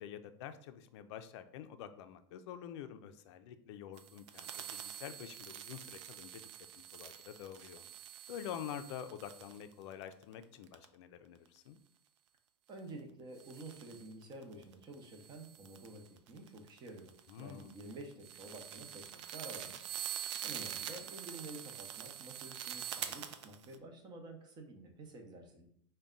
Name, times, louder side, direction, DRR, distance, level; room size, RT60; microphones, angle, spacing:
voice 1, 0.0-6.4 6.7-7.9 8.3-11.8 17.3-17.8, left 9 dB, 65° left, 10 dB, 0.4 m, -47 dB
sound 1, 4.0-10.9 13.4-23.8, right 9 dB, 70° right, 0.4 m, -46 dB
voice 2, 12.7-17.1 17.4-19.8 20.4-25.7, right 2 dB, 25° right, 4 dB, 0.7 m, -50 dB
4.0 x 2.2 x 3.7 m, 0.62 s
supercardioid pair, 150°, 16 cm